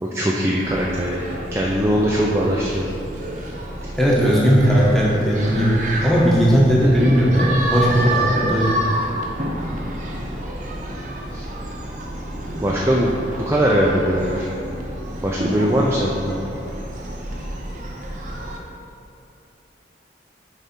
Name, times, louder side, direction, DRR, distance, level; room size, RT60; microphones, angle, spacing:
voice 1, 0.0-1.2 1.5-2.9 11.3-11.5 12.6-13.1 13.4-14.5 15.2-16.4, equal, 15° right, -4 dB, 0.4 m, -20 dB
sound 1, 0.6-18.6, right 1 dB, 40° right, 0.8 m, -29 dB
voice 2, 4.0-8.7, equal, ahead, -6 dB, 1.1 m, -17 dB
6.5 x 4.9 x 4.4 m, 2.7 s
head